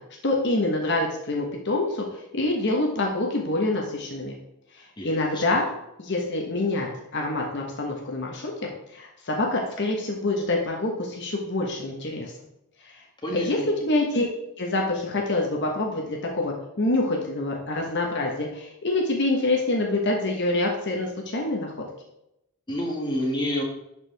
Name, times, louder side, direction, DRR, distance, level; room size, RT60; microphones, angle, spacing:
voice 1, 0.2-2.1 2.3-4.3 5.0-5.7 6.0-12.3 13.3-14.3 14.6-21.7, left 2 dB, 55° left, 0 dB, 1.2 m, -26 dB
voice 2, 5.0-5.4 13.2-13.7 22.7-23.6, left 1 dB, 20° left, -1 dB, 1.7 m, -28 dB
11.5 x 4.7 x 3.4 m, 0.85 s
head